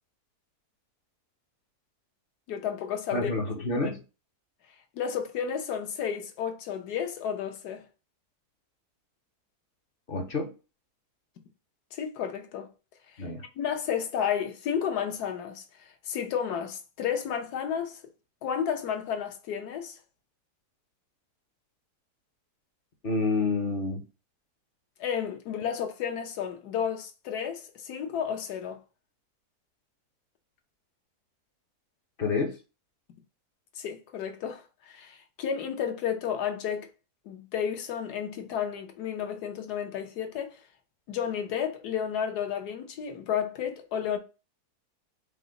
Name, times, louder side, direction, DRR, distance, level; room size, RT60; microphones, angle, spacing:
voice 1, 2.5-3.3 3.7-3.9 4.9-7.8 11.9-12.7 13.1-13.3 13.6-18.0 18.4-20.0 25.0-28.8 33.8-36.9 37.3-40.6 41.1-44.2, left 8 dB, 80° left, 1.3 m, -32 dB
voice 2, 3.1-4.0 10.1-10.5 13.2-13.4 23.0-24.0 32.2-32.6, left 3 dB, 50° left, 0.7 m, -28 dB
4.9 x 2.1 x 3.7 m
omnidirectional pair, 1.7 m